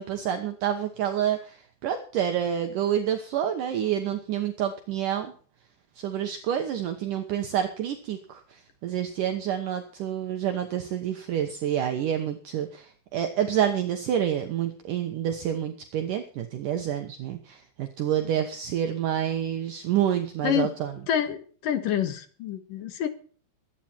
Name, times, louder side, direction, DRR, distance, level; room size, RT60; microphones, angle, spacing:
voice 1, 0.0-1.6 1.8-5.3 6.0-8.4 8.8-20.9, right 10 dB, 65° right, 5 dB, 2.5 m, -28 dB
voice 2, 21.1-23.1, left 9 dB, 65° left, 8 dB, 3.1 m, -27 dB
22.5 x 9.2 x 4.5 m, 0.43 s
omnidirectional pair, 4.4 m